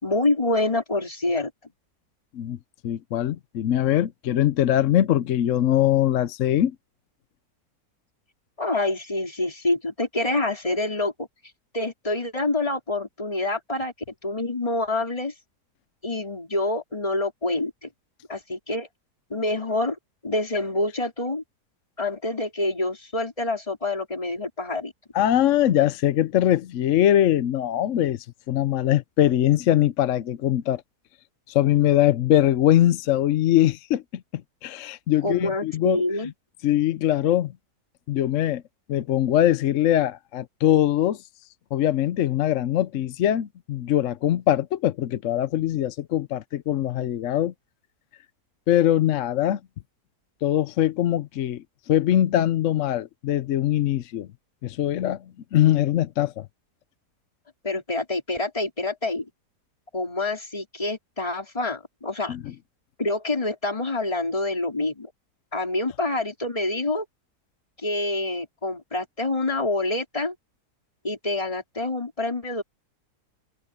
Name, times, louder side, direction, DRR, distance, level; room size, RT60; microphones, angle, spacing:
voice 1, 0.0-1.5 8.6-11.3 11.7-13.9 14.2-15.3 16.0-17.9 18.3-18.9 19.3-21.4 22.0-24.9 35.2-36.3 57.6-59.3 59.9-62.4 63.0-65.1 65.5-67.0 67.8-70.3 71.0-72.6, left 2 dB, 20° left, 4.2 m, -27 dB
voice 2, 2.8-6.7 25.1-30.8 31.5-34.0 34.3-36.0 36.6-37.5 38.1-38.6 38.9-41.2 41.7-47.5 48.7-49.6 50.4-54.3 54.6-55.2 55.5-56.5 62.3-62.4, left 12 dB, 65° left, 0.8 m, -22 dB
omnidirectional pair, 1.8 m